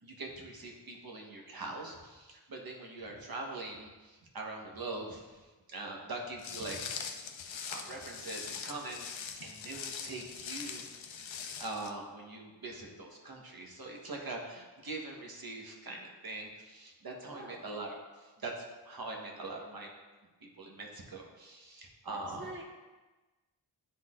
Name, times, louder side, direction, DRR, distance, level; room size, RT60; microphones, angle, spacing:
voice 1, 0.0-7.3 7.7-9.1 9.4-11.0 11.6-17.9 18.2-19.9 20.6-22.5, right 2 dB, 50° right, 0 dB, 1.3 m, -43 dB
Walk footsteps, 6.4-11.9, left 6 dB, 85° left, 0.6 m, -42 dB
voice 2, 17.2-17.8 22.1-22.6, right 1 dB, 25° right, -3 dB, 1.4 m, -47 dB
10.0 x 4.0 x 2.5 m, 1.2 s
cardioid pair, 55°, 45 cm